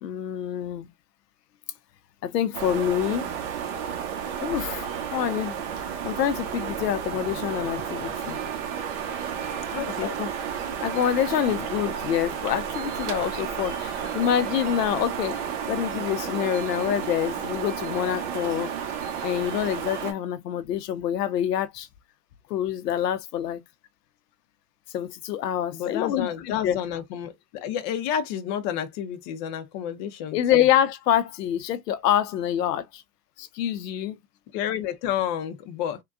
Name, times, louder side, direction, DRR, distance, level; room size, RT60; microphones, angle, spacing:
voice 1, 0.0-0.9 2.2-3.3 4.4-5.6 6.0-8.4 10.0-10.3 10.8-15.4 15.7-18.7 19.2-21.9 22.5-23.6 24.9-26.8 30.3-33.0 33.4-34.2, left 10 dB, 80° left, 0.7 m, -26 dB
sound 1, 2.5-20.1, right 8 dB, 45° right, 0.9 m, -32 dB
voice 2, 9.7-10.1 14.0-14.1 25.7-30.6 34.5-36.0, left 9 dB, 30° left, 0.5 m, -30 dB
3.6 x 2.2 x 2.5 m
hypercardioid pair, 130°, 48 cm